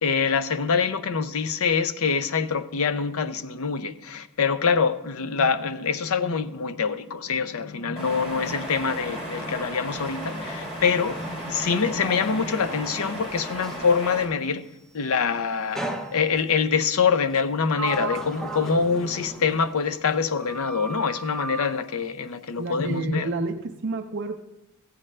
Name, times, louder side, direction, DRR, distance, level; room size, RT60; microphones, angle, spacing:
voice 1, 0.0-14.7 14.9-15.8 16.1-23.3, left 5 dB, 70° left, 0.5 m, -25 dB
sound 1, 8.0-14.3, right 1 dB, 25° left, 3.3 m, -35 dB
Sliding door, 9.9-13.9 15.8-16.6 17.3-20.2 20.4-21.7, right 2 dB, ahead, 0.6 m, -36 dB
voice 2, 22.6-24.4, right 3 dB, 55° right, 0.5 m, -30 dB
14.0 x 8.7 x 3.2 m
head